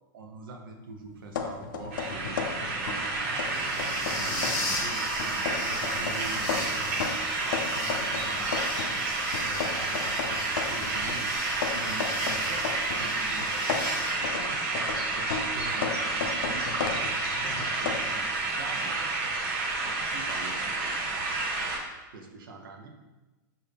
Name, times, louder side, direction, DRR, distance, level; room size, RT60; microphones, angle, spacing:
voice 1, 0.1-7.0 7.3-11.3 11.7-14.6 15.1-16.8 17.4-19.1 19.8-21.4 22.1-22.9, right 3 dB, 80° right, 3 dB, 0.8 m, -44 dB
sound 1, 1.0-14.1, left 2 dB, 20° left, 0.9 m, -39 dB
sound 2, 1.3-3.1 3.4-4.7 5.2-9.0 9.3-13.1 13.4-18.0, left 6 dB, 65° left, 0.5 m, -35 dB
sound 3, 1.9-21.8, right 3 dB, 40° right, 0.7 m, -30 dB
5.6 x 2.7 x 3.5 m, 1.2 s
supercardioid pair, 165°, 11 cm